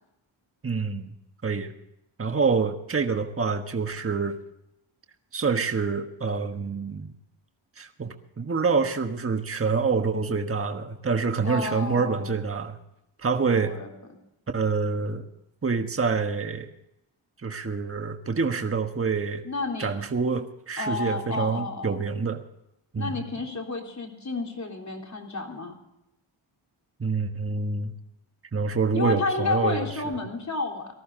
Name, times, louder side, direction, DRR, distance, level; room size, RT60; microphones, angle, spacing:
voice 1, 0.6-1.1 1.4-1.7 2.2-4.4 5.3-7.1 7.8-12.8 13.2-13.8 14.5-15.3 15.6-16.7 17.4-19.4 19.8-22.4 22.9-23.2 27.0-27.9 28.5-29.9, right 4 dB, 25° right, 5 dB, 1.3 m, -26 dB
voice 2, 11.4-12.4 13.5-13.9 19.4-19.9 20.8-22.0 23.0-25.8 28.9-30.9, left 3 dB, 35° left, 1 dB, 3.6 m, -31 dB
19.0 x 14.0 x 3.8 m, 0.84 s
wide cardioid pair, 100°, 49 cm